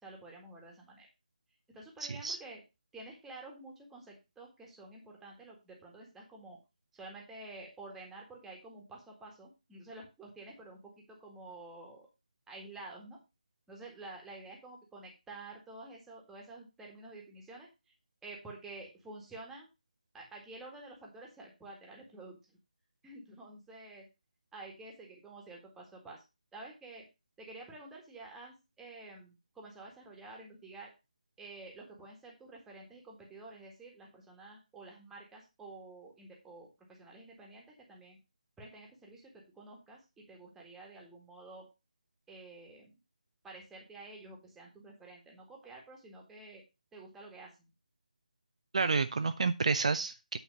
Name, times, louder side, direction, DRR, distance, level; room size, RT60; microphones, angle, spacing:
voice 1, 0.0-1.1 1.7-2.6 2.9-6.6 6.9-12.1 12.5-13.2 13.7-17.7 18.2-19.7 20.1-22.4 23.0-24.1 24.5-26.2 26.5-27.0 27.4-30.9 31.4-38.2 38.6-41.7 42.3-42.9 43.4-46.6 46.9-47.5, right 2 dB, 5° right, -1 dB, 1.7 m, -50 dB
voice 2, 2.0-2.4 48.7-50.4, right 4 dB, 50° right, 10 dB, 0.5 m, -30 dB
8.9 x 4.4 x 5.3 m, 0.26 s
figure-of-eight pair, 155°, 5 cm